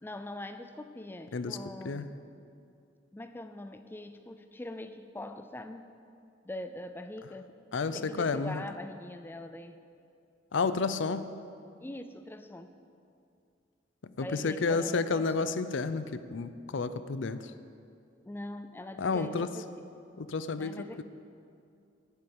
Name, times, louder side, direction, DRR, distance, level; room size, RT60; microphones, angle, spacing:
voice 1, 0.0-2.2 3.1-6.0 6.4-7.5 7.9-9.8 11.8-12.8 14.2-15.7 18.2-19.6 20.6-21.0, left 1 dB, 10° left, 8 dB, 0.4 m, -43 dB
voice 2, 7.7-8.6 10.5-11.3 14.2-17.4 19.0-19.5 20.2-21.0, left 4 dB, 70° left, 12 dB, 0.5 m, -31 dB
9.9 x 8.1 x 8.6 m, 2.5 s
head